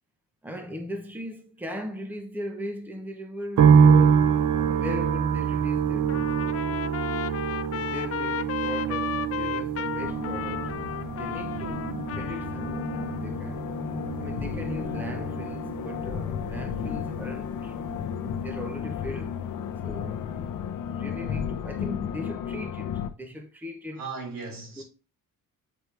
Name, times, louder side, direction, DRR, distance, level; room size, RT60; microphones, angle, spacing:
voice 1, 0.4-4.4 4.7-6.8 7.7-10.7 11.1-13.8 14.2-17.8 18.2-19.4 19.8-20.3 20.8-24.0 24.8-24.9, equal, 5° right, 1.0 m, -39 dB
sound 1, 3.6-18.8 19.1-19.9, right 7 dB, 55° right, 0.7 m, -26 dB
Trumpet, 6.1-13.2, left 11 dB, 45° left, 0.4 m, -34 dB
sound 2, 10.0-23.1, left 8 dB, 65° left, 0.9 m, -34 dB
voice 2, 24.0-24.8, right 4 dB, 75° right, 3.7 m, -37 dB
8.8 x 4.9 x 3.4 m
cardioid pair, 120°, 34 cm